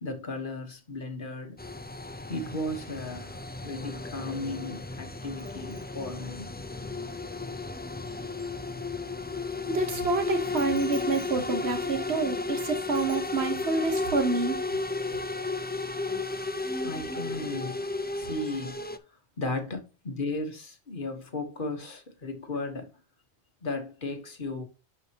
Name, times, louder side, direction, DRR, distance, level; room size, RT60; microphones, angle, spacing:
voice 1, 0.0-1.6 2.3-6.5 16.3-16.5 16.8-17.8 18.1-18.8 19.1-22.9 23.6-24.6, left 2 dB, 55° left, 1.4 m, -35 dB
sound 1, 1.6-19.0, left 3 dB, 15° left, 0.3 m, -34 dB
Bicycle bell, 5.4-9.2 10.6-12.6 12.9-13.8 14.1-14.4, right 2 dB, 60° right, 2.5 m, -55 dB
voice 2, 9.7-14.6, right 3 dB, 85° right, 1.5 m, -28 dB
10.5 x 4.5 x 2.9 m
omnidirectional pair, 1.1 m